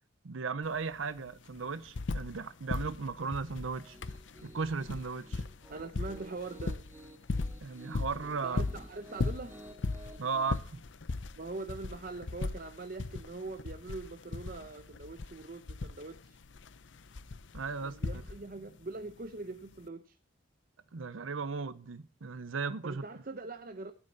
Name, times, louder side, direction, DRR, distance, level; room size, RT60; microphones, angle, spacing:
voice 1, 0.2-4.0 4.4-5.5 7.6-8.6 10.2-10.8 17.5-18.0 20.9-23.0, right 4 dB, 85° right, 0.7 m, -36 dB
sound 1, 0.6-0.7 1.0-2.4 2.7-18.7 19.7-19.8, left 3 dB, 70° left, 0.7 m, -38 dB
Piano, 3.7-10.6, right 1 dB, 15° right, 1.7 m, -53 dB
voice 2, 5.7-6.8 8.4-9.5 11.4-16.4 17.8-20.2 22.8-23.9, right 3 dB, 45° right, 0.8 m, -42 dB
16.0 x 8.8 x 4.0 m
head